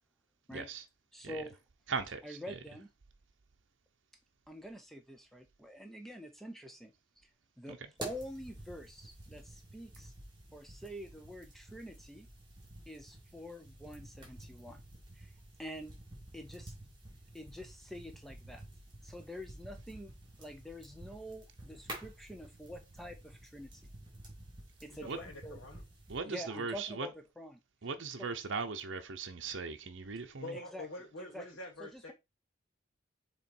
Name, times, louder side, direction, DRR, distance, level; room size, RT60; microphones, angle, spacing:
voice 1, 0.5-0.8 1.2-1.4 1.9-2.4 7.7-7.8 25.0-25.2 26.1-27.1 27.8-30.6, right 4 dB, 70° right, 0.7 m, -38 dB
voice 2, 1.1-1.6 2.2-2.9 4.5-6.9 7.2-7.3 7.6-10.1 10.5-12.3 12.9-14.8 15.1-15.3 15.6-15.9 16.3-16.7 17.3-18.6 19.0-20.1 20.4-23.9 24.8-25.6 26.2-27.6 28.2-28.3 30.5-30.9 31.3-31.4 31.8-32.1, equal, ahead, 0.7 m, -46 dB
sound 1, 8.0-26.2, right 1 dB, 25° right, 2.6 m, -51 dB
voice 3, 25.1-25.8 30.4-32.1, left 2 dB, 90° left, 1.4 m, -45 dB
7.0 x 3.1 x 4.4 m
head